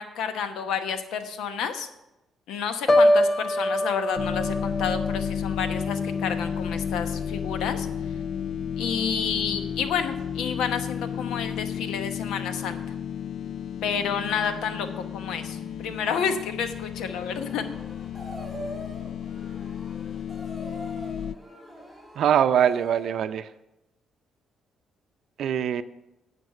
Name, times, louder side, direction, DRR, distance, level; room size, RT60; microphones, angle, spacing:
voice 1, 0.0-1.9 2.5-7.9 8.8-12.8 13.8-17.7, left 7 dB, 85° left, 8 dB, 0.9 m, -30 dB
Piano, 2.9-6.8 7.2-7.6, left 1 dB, 25° left, 0.8 m, -25 dB
sound 1, 4.2-21.4, left 8 dB, 65° left, 0.3 m, -32 dB
sound 2, 17.0-23.2, equal, 10° left, 3.3 m, -43 dB
voice 2, 22.2-23.5 25.4-25.8, right 9 dB, 70° right, 12 dB, 0.5 m, -22 dB
9.4 x 5.3 x 7.2 m, 0.93 s
cardioid pair, 90°, 0 cm